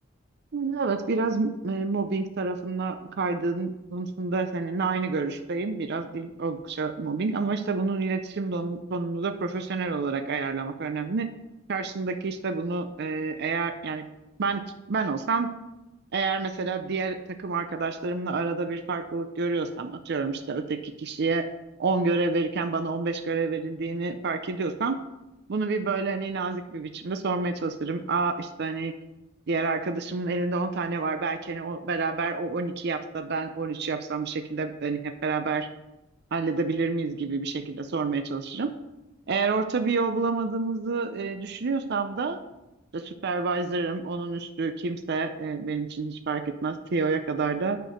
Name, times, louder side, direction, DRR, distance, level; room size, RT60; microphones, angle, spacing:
voice 1, 0.5-11.3 11.7-14.1 14.4-14.6 14.9-15.5 16.1-21.5 21.8-25.0 25.5-28.9 29.5-35.7 36.3-38.7 39.3-42.4 42.9-47.8, right 4 dB, 55° right, 8 dB, 0.5 m, -28 dB
9.1 x 4.6 x 5.1 m, 0.95 s
head